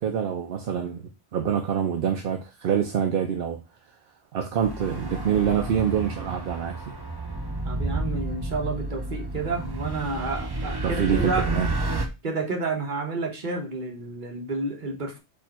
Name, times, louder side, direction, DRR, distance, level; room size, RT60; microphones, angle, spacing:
voice 1, 0.0-3.6 4.3-6.9 10.6-11.7, right 8 dB, 60° right, 0.7 m, -26 dB
sound 1, 4.6-12.1, right 2 dB, 30° right, 0.5 m, -31 dB
voice 2, 7.7-11.5 12.2-15.2, right 3 dB, 45° right, 1.2 m, -30 dB
4.6 x 2.6 x 4.2 m
omnidirectional pair, 1.2 m